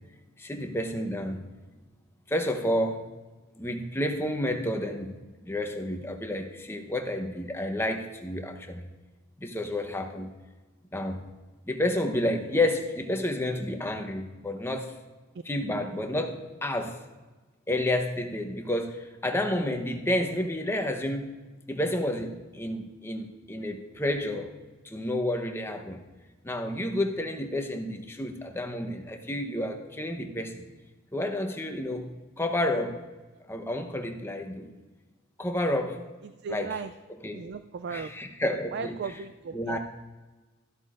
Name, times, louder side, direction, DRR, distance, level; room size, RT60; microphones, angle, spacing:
voice 1, 0.4-1.4 2.3-3.0 3.6-5.2 5.4-8.8 9.4-10.3 10.9-11.2 11.7-14.9 15.4-17.0 17.7-21.4 21.7-24.5 24.8-26.0 26.4-30.6 31.1-33.0 33.5-34.7 35.4-36.0 36.5-36.8 37.1-37.5 37.9-39.1 39.5-39.8, left 1 dB, 10° left, 4 dB, 0.9 m, -30 dB
voice 2, 36.2-36.9 37.3-38.1 38.7-39.8, right 5 dB, 55° right, 10 dB, 0.3 m, -36 dB
13.0 x 12.5 x 2.5 m, 1.2 s
head